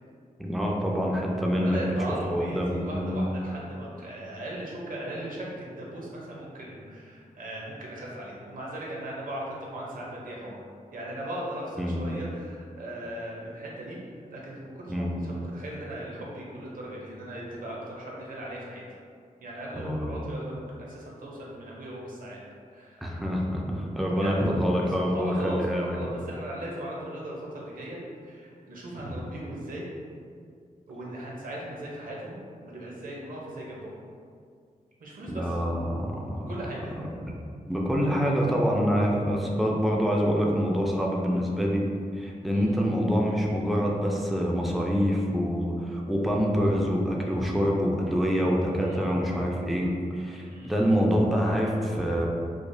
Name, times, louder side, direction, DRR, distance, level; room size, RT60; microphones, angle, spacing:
voice 1, 0.4-1.8 2.3-3.2 11.8-12.0 14.9-15.1 19.8-20.2 23.0-26.0 29.0-29.2 35.3-36.5 37.0-37.1 37.7-41.8 42.2-52.3, equal, ahead, -2 dB, 0.3 m, -26 dB
voice 2, 1.5-10.6 10.9-18.9 19.4-22.4 22.7-23.2 24.0-24.6 25.0-29.9 30.9-32.4 32.6-33.9 35.0-35.6 36.3-36.9 39.6-39.7 42.5-42.8 48.8-49.2 50.5-50.8, right 1 dB, 70° right, -4 dB, 0.7 m, -38 dB
4.7 x 2.0 x 2.6 m, 2.2 s
wide cardioid pair, 175°, 15 cm